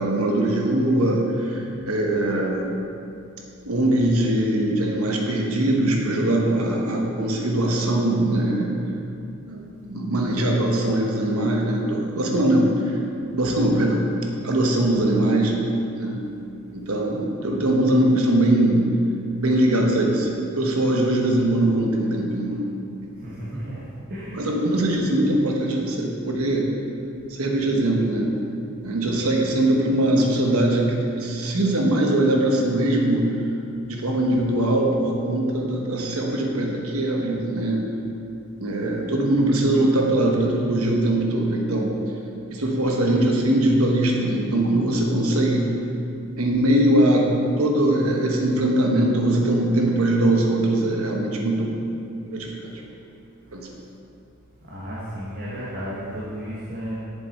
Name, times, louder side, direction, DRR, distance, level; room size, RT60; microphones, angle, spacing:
voice 1, 0.0-2.7 3.6-8.8 9.5-13.0 13.3-14.0 14.4-15.5 15.9-16.2 16.7-18.8 19.4-22.7 23.0-23.1 24.3-26.7 27.3-28.3 28.8-33.3 33.9-37.8 38.6-42.0 42.5-45.7 46.4-47.3 47.6-51.8 52.3-52.7 53.5-53.7, right 1 dB, 85° right, 0 dB, 1.1 m, -21 dB
voice 2, 23.2-23.8 24.1-24.5 54.7-57.0, equal, 45° right, -8 dB, 1.4 m, -33 dB
7.7 x 7.1 x 4.2 m, 2.6 s
head